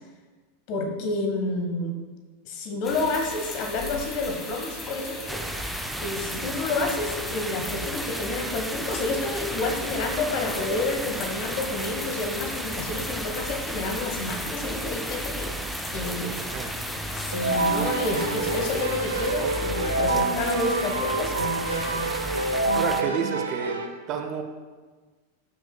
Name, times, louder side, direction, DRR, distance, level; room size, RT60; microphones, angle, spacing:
voice 1, 0.7-1.9 2.4-5.4 6.0-15.5 15.9-16.4 17.1-21.4, left 2 dB, 45° left, 3 dB, 1.4 m, -29 dB
sound 1, 2.8-18.9, left 2 dB, 15° left, 1.5 m, -38 dB
sound 2, 5.3-23.0, right 1 dB, 5° right, 0.5 m, -34 dB
voice 2, 16.3-16.7 22.7-23.8 24.1-24.4, right 7 dB, 35° right, 5 dB, 0.8 m, -30 dB
Keyboard (musical), 17.3-23.9, right 2 dB, 75° right, 0.8 m, -27 dB
14.5 x 6.1 x 2.3 m, 1.4 s
figure-of-eight pair, 90°, 0 cm